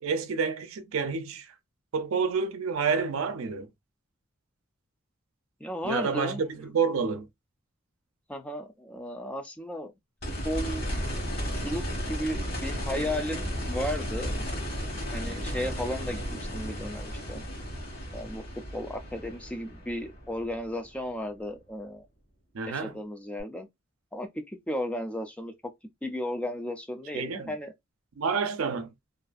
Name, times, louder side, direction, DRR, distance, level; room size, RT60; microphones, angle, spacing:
voice 1, 0.0-1.5 1.9-3.7 5.8-7.3 22.5-22.9 27.1-27.5 28.2-28.9, right 5 dB, 80° right, 0.5 m, -29 dB
voice 2, 5.6-6.4 8.3-9.9 10.4-10.9 11.6-14.4 15.1-16.2 16.5-17.4 18.1-18.4 18.7-22.0 22.7-23.7 24.1-25.5 26.0-27.7, left 1 dB, 5° left, 0.3 m, -34 dB
sound 1, 10.2-21.1 23.4-23.5, equal, 50° left, 1.2 m, -34 dB
2.5 x 2.3 x 2.4 m
head